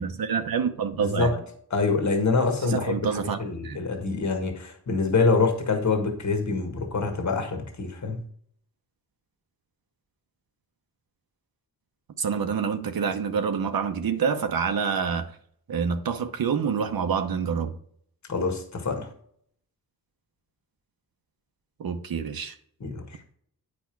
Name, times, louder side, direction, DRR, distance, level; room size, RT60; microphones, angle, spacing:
voice 1, 0.0-1.3 2.6-3.4 3.6-3.8 12.2-15.3 15.7-17.8 21.8-22.6, right 6 dB, 65° right, 0.9 m, -27 dB
voice 2, 1.0-1.4 1.7-8.2 18.3-19.1 22.8-23.2, left 4 dB, 50° left, 1.6 m, -26 dB
8.5 x 5.3 x 4.5 m
cardioid pair, 75°, 38 cm